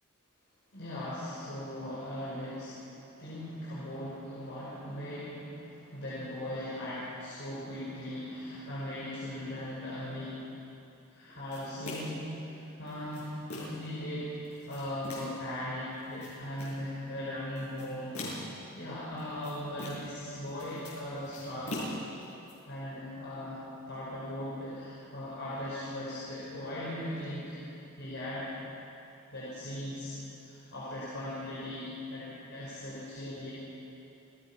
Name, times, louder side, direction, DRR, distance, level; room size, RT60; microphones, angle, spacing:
voice 1, 0.7-10.4 11.1-21.9 22.6-23.6 23.9-27.6 28.0-28.5 29.3-33.5, left 1 dB, 55° left, -8 dB, 5.1 m, -39 dB
sound 1, 11.5-12.3 12.9-13.9 14.4-15.4 16.0-16.8 17.6-18.6 19.2-20.2 20.5-22.5, left 1 dB, 90° left, 7.2 m, -42 dB
28.0 x 18.0 x 5.7 m, 2.8 s
head